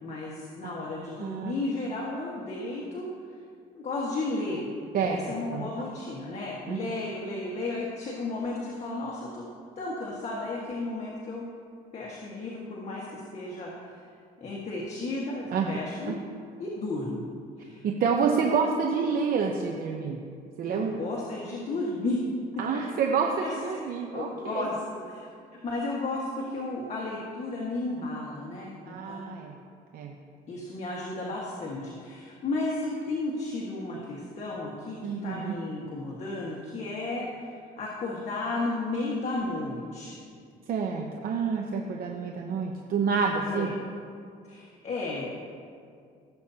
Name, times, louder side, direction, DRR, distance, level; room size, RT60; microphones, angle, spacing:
voice 1, 0.0-3.1 3.7-4.7 5.0-9.4 9.8-11.5 11.9-13.9 14.4-16.2 16.6-17.3 17.6-17.9 20.6-22.2 23.4-23.5 24.1-24.8 25.1-25.2 25.6-29.3 30.5-40.2 43.4-43.7 44.5-45.3, left 2 dB, 40° left, -4 dB, 1.6 m, -33 dB
voice 2, 1.2-1.5 4.9-5.2 5.5-5.7 6.7-6.8 15.5-15.8 16.1-16.2 17.8-20.2 20.6-21.0 22.6-24.7 28.9-29.6 29.9-30.1 35.0-35.5 40.7-43.7, right 5 dB, 60° right, 1 dB, 0.9 m, -28 dB
17.5 x 8.2 x 2.9 m, 2.3 s
cardioid pair, 110°, 17 cm